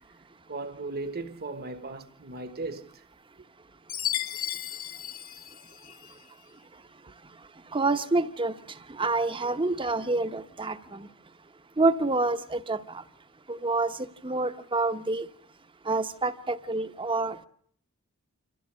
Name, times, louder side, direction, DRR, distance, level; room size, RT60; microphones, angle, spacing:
voice 1, 0.5-3.0, right 3 dB, 45° right, 1.3 m, -37 dB
Chime, 3.9-6.2, left 11 dB, 45° left, 1.1 m, -34 dB
voice 2, 7.7-8.5 8.9-11.1 11.8-13.0 13.5-15.3 15.8-17.5, right 3 dB, 25° right, 0.9 m, -27 dB
27.0 x 15.0 x 7.4 m
head